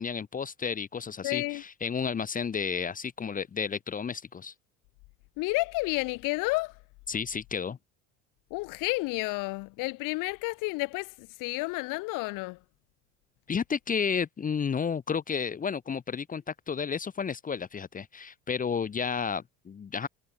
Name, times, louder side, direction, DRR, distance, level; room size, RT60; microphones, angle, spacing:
voice 1, 0.0-4.5 7.1-7.8 13.5-20.1, left 6 dB, 25° left, 1.2 m, -32 dB
voice 2, 1.2-1.6 5.4-6.8 8.5-12.6, left 24 dB, 65° left, 0.7 m, -31 dB
cardioid pair, 130°, 35 cm